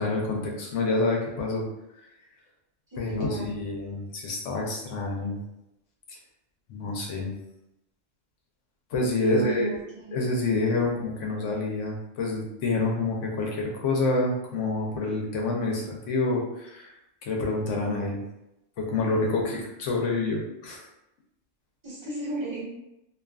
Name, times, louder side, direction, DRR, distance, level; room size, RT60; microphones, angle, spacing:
voice 1, 0.0-1.6 3.0-5.4 6.7-7.3 8.9-9.7 10.1-16.9 17.2-18.2 18.8-20.9, left 3 dB, 80° left, -1 dB, 1.0 m, -27 dB
voice 2, 2.9-3.5 9.2-10.2 21.8-22.6, right 4 dB, 25° right, -8 dB, 0.9 m, -34 dB
2.6 x 2.4 x 2.3 m, 0.87 s
omnidirectional pair, 1.3 m